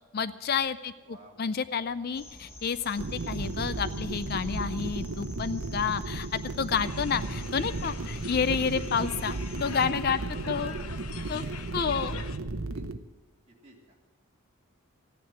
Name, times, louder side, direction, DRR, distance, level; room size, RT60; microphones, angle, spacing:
voice 1, 0.1-10.2 10.5-10.7 11.3-11.4 11.7-12.2, left 6 dB, 45° left, 14 dB, 0.4 m, -30 dB
voice 2, 1.0-1.6 10.3-10.7 11.2-11.7 12.7-12.8 13.5-14.0, right 1 dB, 30° right, -3 dB, 3.0 m, -51 dB
sound 1, 2.1-9.9, left 1 dB, 10° left, 0.9 m, -49 dB
sound 2, 3.0-13.0, right 2 dB, 75° right, 0.8 m, -34 dB
sound 3, 6.8-12.4, left 7 dB, 85° left, 0.8 m, -44 dB
15.5 x 10.0 x 7.7 m, 1.2 s
head